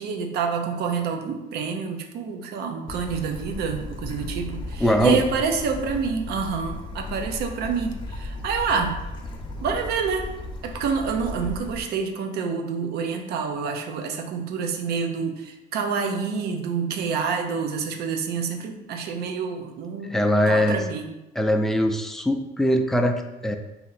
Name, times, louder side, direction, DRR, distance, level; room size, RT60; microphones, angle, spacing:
voice 1, 0.0-9.0 9.6-10.3 10.6-20.2 20.5-21.1, right 5 dB, 75° right, 5 dB, 0.6 m, -27 dB
Bird / Stream, 2.9-11.8, left 2 dB, 25° left, 0.8 m, -36 dB
voice 2, 4.8-5.2 20.1-20.8 21.4-23.6, left 1 dB, ahead, 4 dB, 0.4 m, -21 dB
4.2 x 2.8 x 4.0 m, 0.97 s
cardioid pair, 110°, 17 cm